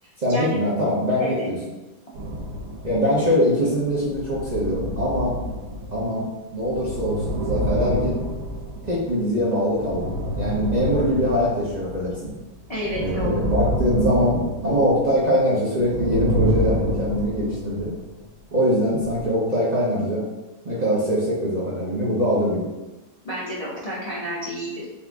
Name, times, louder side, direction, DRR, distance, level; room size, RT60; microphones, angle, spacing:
voice 1, 0.2-1.6 2.8-5.4 5.9-8.2 8.8-12.3 12.9-17.9 18.5-20.2 20.6-22.7, equal, 50° right, -8 dB, 0.5 m, -23 dB
sound 1, 2.1-3.5 3.9-12.3 12.6-15.4 15.7-18.2 19.0-19.2, equal, 75° right, 1.3 m, -28 dB
voice 2, 12.7-13.7 23.2-24.8, equal, 75° left, -8 dB, 0.3 m, -30 dB
4.1 x 2.5 x 3.5 m, 1.1 s
omnidirectional pair, 1.8 m